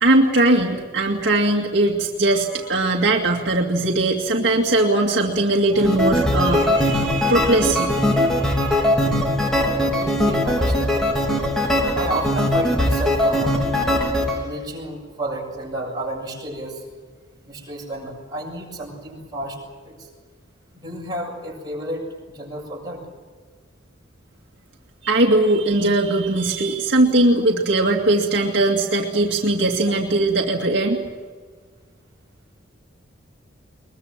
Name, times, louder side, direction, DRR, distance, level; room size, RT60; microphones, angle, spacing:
voice 1, 0.0-8.9 25.0-31.0, right 2 dB, 60° right, 0 dB, 2.2 m, -20 dB
sound 1, 5.7-14.4, left 1 dB, 5° left, 3.4 m, -20 dB
voice 2, 9.6-11.1 11.9-13.6 14.2-16.8 17.5-19.6 19.8-20.1 20.7-23.0, right 1 dB, 20° right, -2 dB, 7.2 m, -31 dB
22.5 x 22.0 x 7.5 m, 1.5 s
head